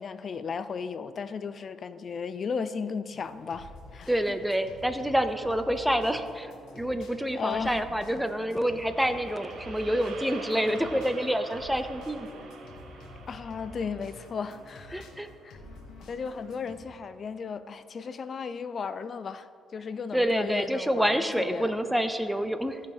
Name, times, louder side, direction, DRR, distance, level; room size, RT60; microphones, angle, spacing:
voice 1, 0.0-4.4 7.3-7.8 13.3-15.1 15.4-15.6 16.1-21.8, left 5 dB, 50° left, 13 dB, 0.4 m, -35 dB
sound 1, 3.1-16.8, left 2 dB, 80° left, 1.3 m, -48 dB
voice 2, 4.1-12.3 14.9-15.3 20.1-22.8, equal, 5° right, 9 dB, 0.6 m, -27 dB
sound 2, 8.3-16.6, right 4 dB, 70° right, 1.1 m, -46 dB
15.5 x 5.5 x 3.5 m, 2.3 s
cardioid pair, 90°, 0 cm